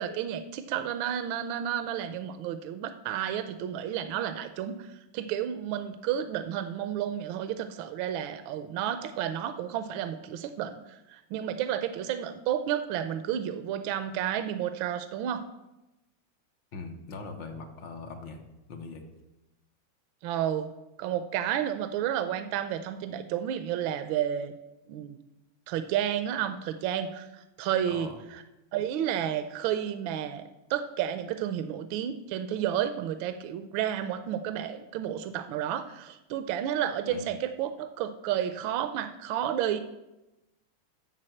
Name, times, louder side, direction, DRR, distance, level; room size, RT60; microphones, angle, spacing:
voice 1, 0.0-4.9 5.1-15.4 20.2-20.7 21.0-24.5 24.9-25.2 25.7-27.3 27.6-28.1 28.7-39.8, right 10 dB, 80° right, 9 dB, 1.3 m, -31 dB
voice 2, 16.7-18.4 18.7-19.0 27.9-28.2 37.1-37.2, left 4 dB, 70° left, 4 dB, 1.6 m, -41 dB
7.6 x 6.5 x 7.7 m, 0.98 s
omnidirectional pair, 2.2 m